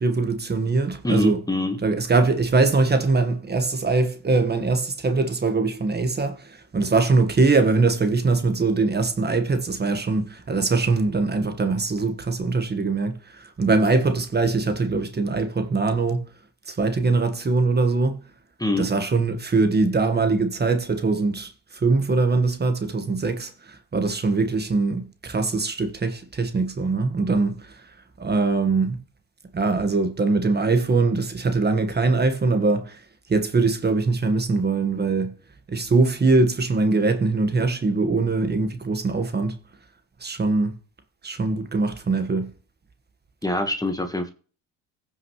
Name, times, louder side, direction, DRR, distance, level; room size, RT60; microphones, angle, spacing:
voice 1, 0.0-1.4 1.8-16.3 16.7-18.2 18.8-27.8 28.2-29.0 29.5-33.0 33.3-35.3 35.7-39.5 40.2-40.8 41.2-42.5, right 3 dB, 25° right, 1.6 m, -22 dB
voice 2, 1.0-1.8 18.6-18.9 43.4-44.3, left 1 dB, 10° left, 1.5 m, -24 dB
15.5 x 6.0 x 3.2 m
supercardioid pair, 80°, 36 cm